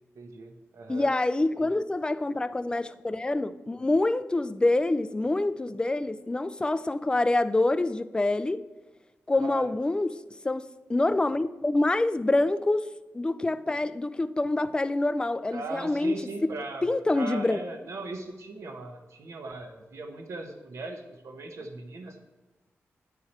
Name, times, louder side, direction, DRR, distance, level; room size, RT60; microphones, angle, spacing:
voice 1, 0.1-1.1 1.6-1.7 9.4-9.7 15.5-16.8 17.1-22.2, right 3 dB, 80° right, 1.1 m, -39 dB
voice 2, 0.9-8.7 9.3-10.2 10.4-12.9 13.1-16.5 16.8-17.6, left 2 dB, 20° left, 0.3 m, -26 dB
9.7 x 4.7 x 4.3 m
wide cardioid pair, 110°, 5 cm